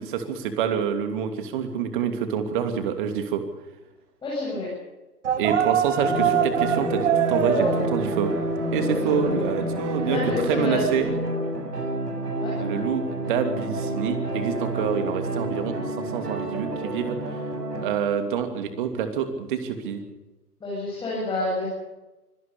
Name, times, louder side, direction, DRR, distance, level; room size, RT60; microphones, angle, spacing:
voice 1, 0.0-3.4 5.4-8.3 8.7-11.1 12.6-17.2 17.8-20.0, right 7 dB, 30° right, 8 dB, 2.9 m, -27 dB
voice 2, 4.2-4.7 7.4-7.8 8.8-9.4 10.0-11.1 12.4-12.5 20.6-21.7, left 1 dB, 10° left, -7 dB, 7.9 m, -29 dB
sound 1, 5.2-11.1, right 8 dB, 45° right, 2.3 m, -26 dB
sound 2, 6.0-17.9, equal, 75° right, 7.8 m, -29 dB
25.0 x 17.5 x 7.1 m, 1.1 s
figure-of-eight pair, 130°, 48 cm